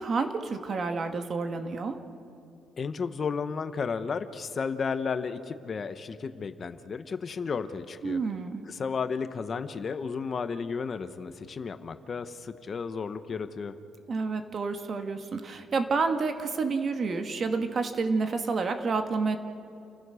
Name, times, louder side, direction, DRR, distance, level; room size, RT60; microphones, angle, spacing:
voice 1, 0.0-2.0 8.0-8.6 14.1-19.4, right 4 dB, 40° right, 7 dB, 1.7 m, -29 dB
voice 2, 2.8-8.2 8.6-13.7, left 5 dB, 35° left, 10 dB, 1.0 m, -33 dB
29.5 x 14.5 x 6.3 m, 2.8 s
cardioid pair, 115°, 0 cm